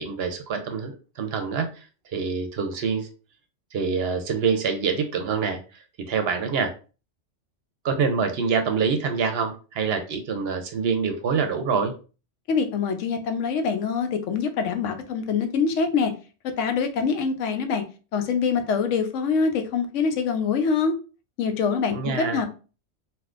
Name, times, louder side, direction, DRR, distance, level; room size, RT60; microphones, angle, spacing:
voice 1, 0.0-3.1 3.7-6.7 7.8-11.9 21.9-22.4, right 5 dB, 65° right, 6 dB, 0.7 m, -26 dB
voice 2, 12.5-16.1 16.6-17.8 18.1-20.9 21.4-22.5, left 5 dB, 90° left, 7 dB, 0.9 m, -24 dB
3.3 x 2.5 x 2.4 m, 0.35 s
omnidirectional pair, 1.2 m